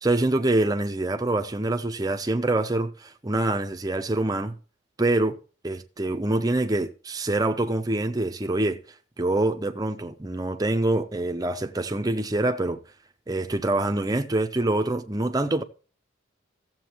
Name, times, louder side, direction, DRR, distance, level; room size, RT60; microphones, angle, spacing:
voice 1, 0.0-4.5 5.0-5.4 5.6-8.8 9.2-12.8 13.3-15.6, right 2 dB, 20° right, 0.6 m, -25 dB
15.0 x 7.5 x 3.0 m
head